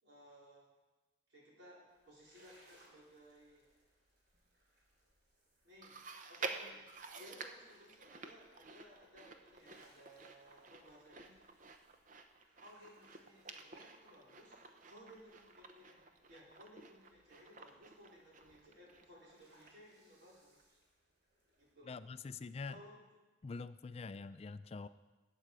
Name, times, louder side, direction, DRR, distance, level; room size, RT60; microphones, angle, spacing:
voice 1, 0.0-0.7 1.3-3.6 5.6-6.0 6.3-6.9 7.1-11.4 12.6-16.0 16.3-20.8 21.6-22.1 22.7-23.0, equal, 75° right, -5 dB, 4.3 m, -60 dB
sound 1, 1.9-21.7, right 1 dB, 60° right, 3.2 m, -72 dB
Chewing mastication, 5.8-19.4 19.7-19.8 20.6-20.7, right 4 dB, 45° right, 0.8 m, -50 dB
voice 2, 21.9-22.8 23.4-24.9, left 4 dB, 35° left, 13 dB, 0.3 m, -45 dB
14.0 x 9.3 x 4.9 m, 1.2 s
head